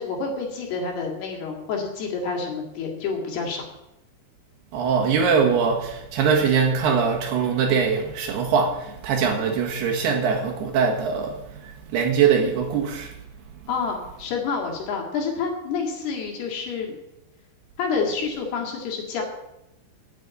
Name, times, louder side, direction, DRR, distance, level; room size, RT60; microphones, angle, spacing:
voice 1, 0.0-3.6 13.7-17.0 17.8-19.2, left 5 dB, 65° left, 4.0 m, -28 dB
voice 2, 4.7-13.1, right 6 dB, 65° right, 3.3 m, -22 dB
9.5 x 9.3 x 9.3 m
omnidirectional pair, 5.4 m